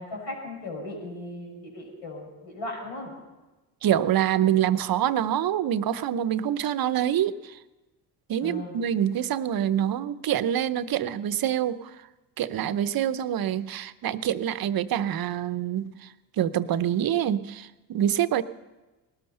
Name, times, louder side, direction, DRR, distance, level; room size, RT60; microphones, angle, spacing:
voice 1, 0.0-3.1 8.4-8.7, left 2 dB, 75° left, 0 dB, 6.4 m, -37 dB
voice 2, 3.8-7.6 8.3-11.9 12.4-16.0 16.4-18.4, right 10 dB, 50° right, 13 dB, 0.8 m, -26 dB
19.0 x 12.5 x 5.5 m, 1.1 s
supercardioid pair, 80°, 46 cm